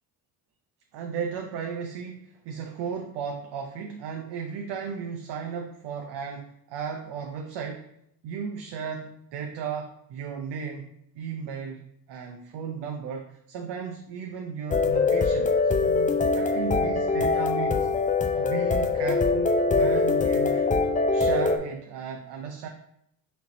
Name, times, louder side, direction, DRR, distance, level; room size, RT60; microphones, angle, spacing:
voice 1, 0.9-7.9 8.2-10.9 11.2-11.8 12.1-17.9 18.3-20.6 21.1-22.7, right 6 dB, 70° right, 3 dB, 0.6 m, -35 dB
sound 1, 14.7-21.6, left 4 dB, 20° left, 0.4 m, -23 dB
4.4 x 2.9 x 4.0 m, 0.74 s
supercardioid pair, 65°, 44 cm